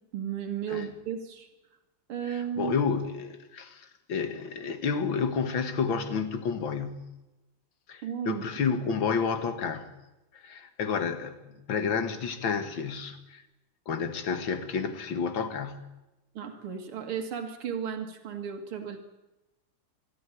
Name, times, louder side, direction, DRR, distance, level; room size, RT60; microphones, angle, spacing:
voice 1, 0.1-1.5 2.1-2.7 8.0-8.4 16.3-19.0, right 8 dB, 90° right, 6 dB, 2.8 m, -34 dB
voice 2, 2.3-7.1 7.9-9.9 10.3-13.4 13.9-15.9, left 5 dB, 65° left, 9 dB, 2.4 m, -30 dB
24.0 x 13.0 x 9.9 m, 1.0 s
omnidirectional pair, 2.3 m